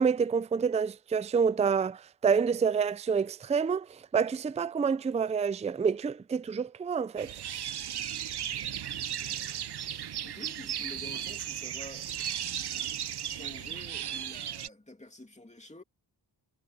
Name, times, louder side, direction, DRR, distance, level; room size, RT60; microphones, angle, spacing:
voice 1, 0.0-7.3, right 6 dB, 15° right, 0.3 m, -28 dB
sound 1, 7.2-14.7, right 10 dB, 65° right, 0.7 m, -36 dB
voice 2, 10.2-12.2 13.2-15.8, left 1 dB, 15° left, 2.7 m, -48 dB
wide cardioid pair, 120°, 43 cm